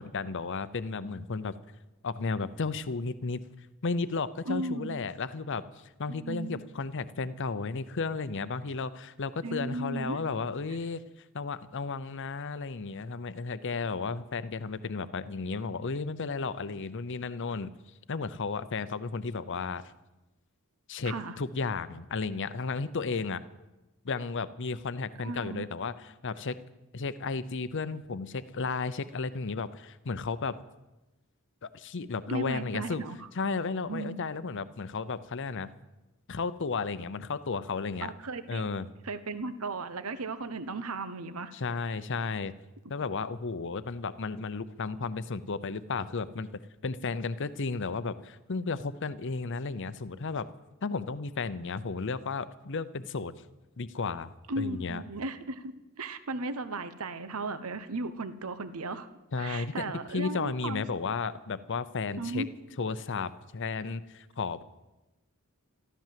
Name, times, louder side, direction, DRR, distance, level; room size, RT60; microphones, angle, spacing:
voice 1, 0.0-1.5 2.0-3.4 3.8-5.6 6.0-11.0 11.3-17.7 18.1-19.8 20.9-23.4 24.0-26.6 26.9-30.5 31.6-33.0 33.4-35.7 36.3-38.1 38.5-38.9 41.5-42.5 42.9-46.5 46.8-50.5 50.8-53.3 53.8-54.3 54.6-55.0 59.3-62.4 62.8-64.6, left 4 dB, 60° left, 15 dB, 0.7 m, -33 dB
voice 2, 4.5-5.0 6.1-6.6 9.4-10.2 21.1-21.4 25.2-25.7 32.3-33.3 33.9-34.2 38.0-41.5 54.5-59.1 59.4-60.8 62.2-62.5, right 2 dB, 80° right, 12 dB, 1.0 m, -36 dB
13.5 x 13.5 x 7.6 m, 1.0 s
head